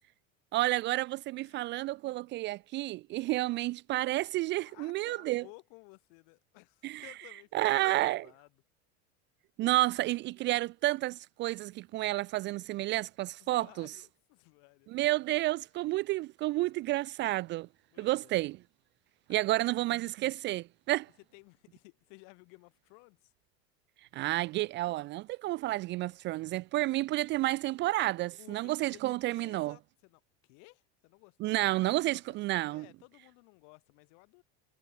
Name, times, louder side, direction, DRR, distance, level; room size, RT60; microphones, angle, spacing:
voice 1, 0.5-5.4 6.8-7.1 7.5-8.3 9.6-13.9 14.9-17.7 18.0-18.6 19.3-21.1 24.1-29.8 31.4-32.9, right 17 dB, 35° right, 0.4 m, -30 dB
voice 2, 1.4-1.9 4.5-8.5 13.4-15.1 16.6-16.7 17.9-18.5 19.3-19.8 21.3-23.3 28.4-34.4, left 39 dB, 60° left, 6.4 m, -57 dB
cardioid pair, 160°, 35 cm